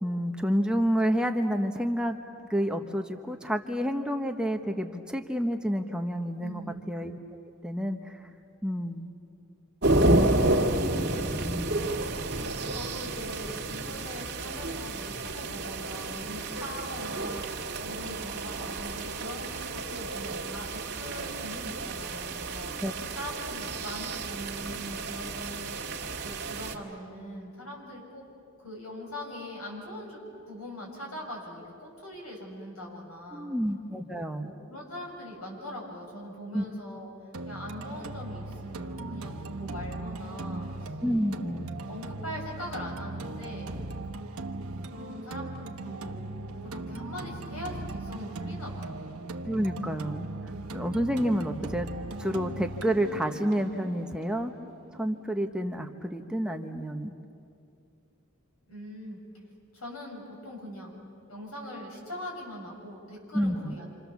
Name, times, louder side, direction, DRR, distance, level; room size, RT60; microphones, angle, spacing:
voice 1, 0.0-2.2 2.5-6.6 6.9-7.2 7.6-8.2 8.6-9.1 11.5-11.7 22.8-22.9 33.3-34.5 36.5-36.6 41.0-41.6 49.4-50.3 50.7-51.9 52.2-54.5 54.9-57.1 63.3-63.8, equal, 5° right, 4 dB, 0.9 m, -29 dB
voice 2, 6.4-6.8 10.4-22.7 23.1-25.7 26.2-28.2 28.6-30.2 30.5-33.5 34.4-37.1 37.5-40.9 41.3-41.5 41.8-43.7 44.8-49.0 58.7-59.2 59.7-61.0 61.3-64.0, equal, 85° left, -1 dB, 7.4 m, -42 dB
sound 1, 9.8-26.7, right 2 dB, 50° right, 2.1 m, -30 dB
sound 2, 37.3-55.3, right 2 dB, 80° right, 1.0 m, -38 dB
28.0 x 27.0 x 7.1 m, 2.5 s
head